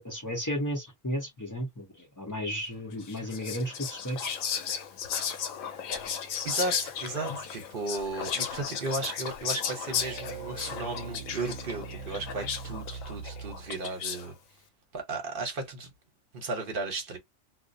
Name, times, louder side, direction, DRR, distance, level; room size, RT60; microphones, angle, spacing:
voice 1, 0.0-4.3, equal, 25° left, 0.4 m, -34 dB
Whispering, 3.0-14.3, left 7 dB, 85° left, 1.0 m, -35 dB
voice 2, 6.4-14.4 14.9-15.9 16.3-17.2, right 3 dB, 45° right, 1.0 m, -35 dB
sound 1, 9.9-13.8, right 7 dB, 80° right, 0.9 m, -42 dB
2.4 x 2.0 x 2.5 m
omnidirectional pair, 1.4 m